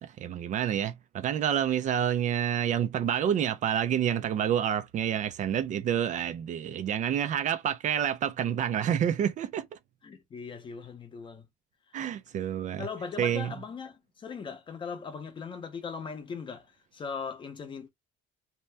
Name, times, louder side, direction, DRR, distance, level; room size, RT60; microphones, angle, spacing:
voice 1, 0.0-9.7 11.9-12.9 13.2-13.5, right 9 dB, 40° right, 0.4 m, -28 dB
voice 2, 10.0-11.5 11.9-12.0 12.8-17.9, left 5 dB, 25° left, 0.6 m, -39 dB
2.7 x 2.1 x 3.3 m
cardioid pair, 155°, 19 cm